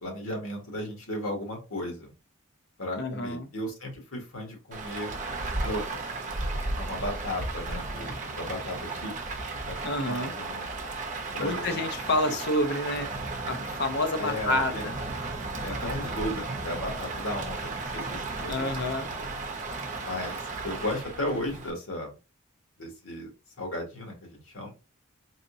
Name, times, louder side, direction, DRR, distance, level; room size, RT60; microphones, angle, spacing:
voice 1, 0.0-2.1 2.8-5.1 5.6-6.1 6.8-9.1 9.6-10.7 11.2-12.1 14.2-14.8 15.6-19.3 20.0-22.2 22.8-23.3 23.6-24.7, left 1 dB, 85° left, 1.7 m, -35 dB
voice 2, 3.0-3.5 9.8-10.3 11.4-13.1 13.5-14.9 18.5-19.1, left 1 dB, 50° left, 0.6 m, -28 dB
Rain, 4.7-21.7, right 3 dB, 35° right, 0.8 m, -34 dB
4.1 x 2.8 x 2.6 m
head